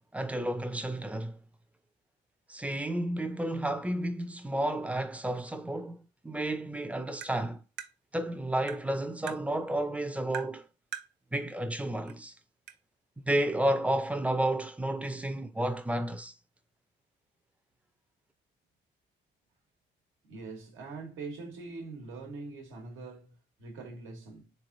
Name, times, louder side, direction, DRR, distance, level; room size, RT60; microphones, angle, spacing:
voice 1, 0.1-1.4 2.5-7.6 8.1-10.7 11.3-12.3 13.3-16.3, right 1 dB, 5° right, 0.4 m, -31 dB
Tap, 7.2-7.3 7.8-7.9 8.7-8.8 9.3-9.4 10.3-10.5 10.9-11.1 12.1-12.2 12.7-12.8, right 10 dB, 65° right, 0.6 m, -40 dB
voice 2, 20.3-24.5, right 3 dB, 85° right, 1.2 m, -43 dB
3.6 x 3.2 x 2.5 m
cardioid pair, 90°, 20 cm